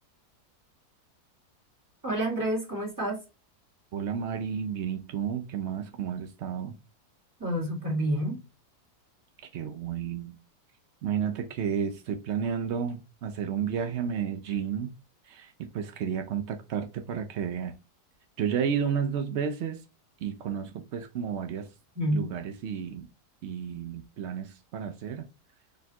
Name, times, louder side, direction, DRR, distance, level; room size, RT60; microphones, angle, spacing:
voice 1, 2.0-3.2 7.4-8.4 21.9-22.3, right 1 dB, 10° right, 1.7 m, -28 dB
voice 2, 3.9-6.7 9.5-10.4 11.0-14.9 15.3-17.7 18.4-19.8 20.2-21.7 22.1-23.1 23.4-25.3, right 7 dB, 90° right, 0.6 m, -32 dB
4.2 x 3.2 x 2.7 m
omnidirectional pair, 1.8 m